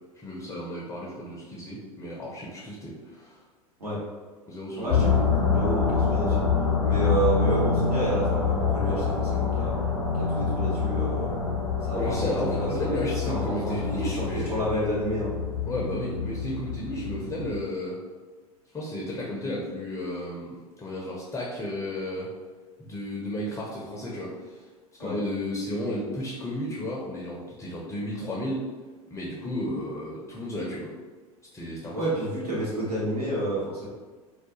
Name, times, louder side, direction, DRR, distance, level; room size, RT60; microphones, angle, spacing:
voice 1, 0.1-3.4 4.5-5.0 11.9-14.7 15.7-18.0 18.7-22.3 22.8-24.6 24.9-28.7 29.1-30.9 31.5-32.2, left 1 dB, 15° left, -4 dB, 0.5 m, -33 dB
voice 2, 4.8-6.4 6.8-9.7 10.2-11.4 11.9-15.3 25.0-25.2 31.9-33.8, right 1 dB, 90° right, -8 dB, 1.0 m, -30 dB
sound 1, 4.9-17.6, left 5 dB, 70° left, 0.6 m, -26 dB
2.3 x 2.1 x 2.8 m, 1.3 s
figure-of-eight pair, 85°, 19 cm